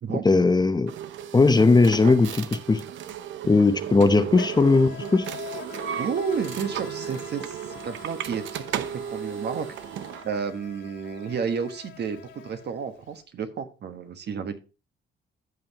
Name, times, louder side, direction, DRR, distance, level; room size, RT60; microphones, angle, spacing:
voice 1, 0.2-0.9 1.3-2.8 3.5-5.3, left 3 dB, 20° left, 10 dB, 0.8 m, -18 dB
sound 1, 0.9-10.3, right 9 dB, 75° right, 0.7 m, -35 dB
Insect, 1.7-1.9 2.1-13.1, left 6 dB, 75° left, 2.8 m, -44 dB
voice 2, 6.0-9.7 10.2-14.6, right 6 dB, 60° right, 8 dB, 1.4 m, -31 dB
14.0 x 5.6 x 3.0 m, 0.31 s
cardioid pair, 90°, 20 cm